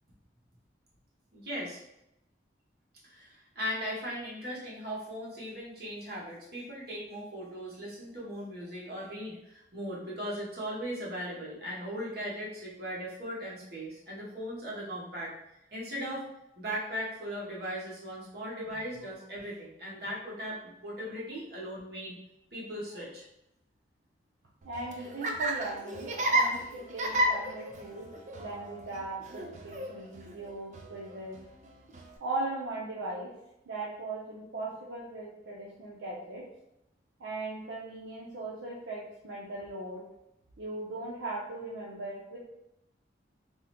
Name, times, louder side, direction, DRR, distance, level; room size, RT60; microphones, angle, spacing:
voice 1, 1.3-1.8 3.0-15.3 15.7-16.2 16.5-22.2 22.5-23.3, equal, 60° right, -6 dB, 1.0 m, -38 dB
Laughter, 24.6-32.2, right 1 dB, 40° right, 0.3 m, -33 dB
voice 2, 24.6-28.1 28.4-31.4 32.2-33.3 33.7-36.4 37.2-40.0 40.6-42.4, right 2 dB, 85° right, -6 dB, 0.6 m, -38 dB
3.5 x 2.1 x 2.9 m, 0.84 s
head